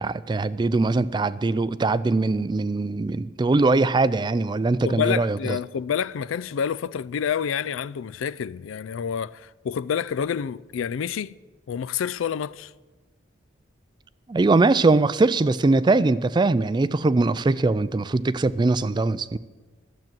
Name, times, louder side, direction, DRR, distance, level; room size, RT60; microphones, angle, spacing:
voice 1, 0.0-5.6 14.3-19.4, right 3 dB, 25° right, 0.3 m, -21 dB
voice 2, 4.9-11.3 11.7-12.7, left 7 dB, 85° left, 0.4 m, -28 dB
12.0 x 7.5 x 9.1 m
head